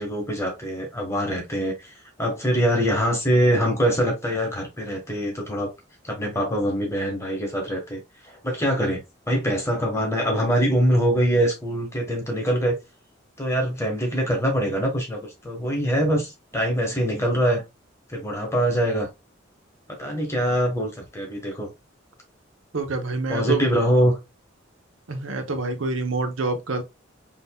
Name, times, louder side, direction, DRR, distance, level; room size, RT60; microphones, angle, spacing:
voice 1, 0.0-1.7 2.2-5.7 6.1-8.0 8.4-9.0 9.3-12.8 13.4-17.6 18.1-19.1 19.9-21.7 23.3-24.2, equal, 15° left, 1.2 m, -23 dB
voice 2, 22.7-23.6 25.1-26.8, right 3 dB, 80° right, 0.8 m, -26 dB
5.3 x 2.8 x 2.2 m
head